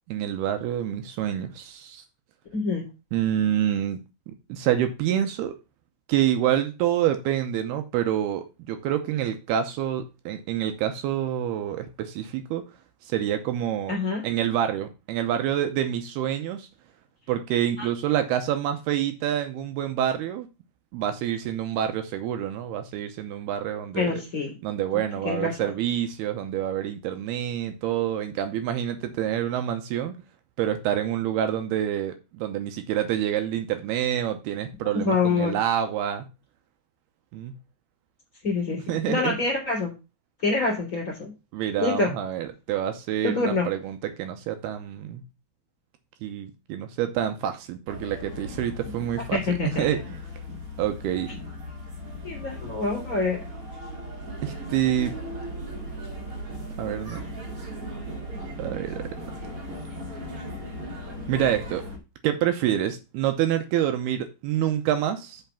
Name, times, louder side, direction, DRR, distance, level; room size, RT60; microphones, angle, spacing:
voice 1, 0.1-2.0 3.1-4.0 4.3-5.5 6.1-12.6 13.0-14.0 14.2-16.7 17.3-20.5 20.9-24.2 24.6-30.2 30.6-36.3 37.3-37.5 38.9-39.4 41.5-45.2 46.2-49.4 49.8-50.0 50.8-51.3 54.4-55.1 56.8-57.2 58.6-59.0 61.3-61.8 62.2-65.4, right 10 dB, 75° right, 7 dB, 2.7 m, -27 dB
voice 2, 2.5-2.9 13.9-14.2 17.8-17.9 23.9-24.5 25.2-25.7 35.0-35.6 38.4-38.8 39.1-39.9 40.4-41.3 41.8-42.1 43.2-43.7 49.3-49.8 52.2-53.4, left 3 dB, 25° left, -1 dB, 3.1 m, -26 dB
sound 1, 47.9-62.0, equal, 40° right, 2.8 m, -37 dB
5.8 x 5.7 x 6.9 m, 0.28 s
omnidirectional pair, 4.8 m